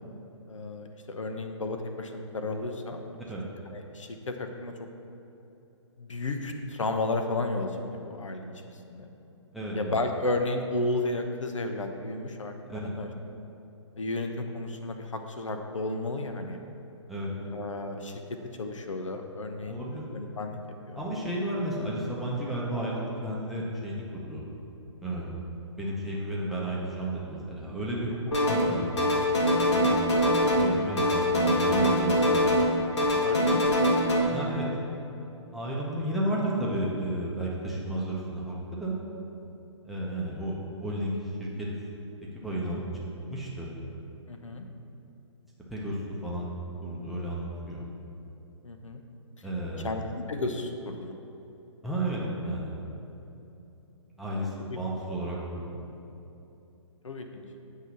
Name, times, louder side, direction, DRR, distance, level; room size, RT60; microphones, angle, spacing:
voice 1, 0.5-3.2 3.7-4.7 6.0-8.5 8.9-9.1 9.7-13.1 14.0-16.6 17.5-18.2 18.6-19.8 20.1-20.6 20.9-21.0 33.2-33.7 44.3-44.7 48.6-49.0 49.8-51.1 54.3-54.8 57.0-57.4, left 2 dB, 80° left, 5 dB, 0.7 m, -33 dB
voice 2, 9.5-9.9 12.7-12.8 17.1-17.5 19.7-20.0 21.0-24.5 25.0-25.4 25.8-28.2 28.5-29.9 30.6-32.5 34.3-34.7 35.5-39.0 39.8-40.5 40.8-41.7 42.4-43.0 43.3-43.7 45.7-46.5 46.8-47.8 49.4-50.0 51.8-52.7 54.2-55.8, right 1 dB, ahead, -6 dB, 0.7 m, -32 dB
sound 1, 28.3-28.7 29.0-30.7 31.0-32.7 33.0-34.2, equal, 65° left, 1.3 m, -23 dB
7.9 x 2.8 x 5.9 m, 2.9 s
figure-of-eight pair, 135°, 16 cm